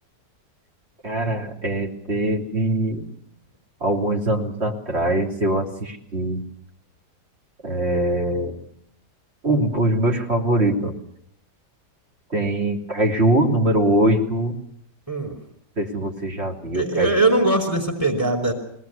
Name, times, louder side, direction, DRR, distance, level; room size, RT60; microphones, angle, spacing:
voice 1, 1.0-3.1 3.8-6.4 7.6-8.6 9.4-10.9 12.3-14.6 15.8-17.2, right 1 dB, 35° right, 1 dB, 3.4 m, -22 dB
voice 2, 16.7-18.5, right 2 dB, 10° right, 3 dB, 4.7 m, -21 dB
23.0 x 19.0 x 8.2 m, 0.71 s
omnidirectional pair, 1.9 m